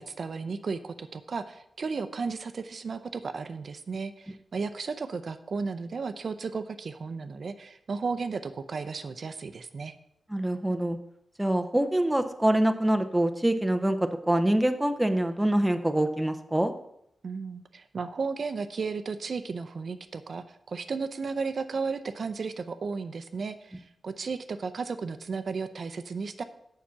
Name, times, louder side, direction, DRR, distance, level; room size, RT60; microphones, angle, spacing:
voice 1, 0.0-9.9 17.2-26.4, right 4 dB, 50° right, 10 dB, 0.6 m, -34 dB
voice 2, 10.3-11.0 11.4-14.0 14.3-16.7, right 1 dB, 5° right, 7 dB, 0.6 m, -25 dB
7.1 x 5.7 x 7.4 m, 0.77 s
wide cardioid pair, 140°, 0 cm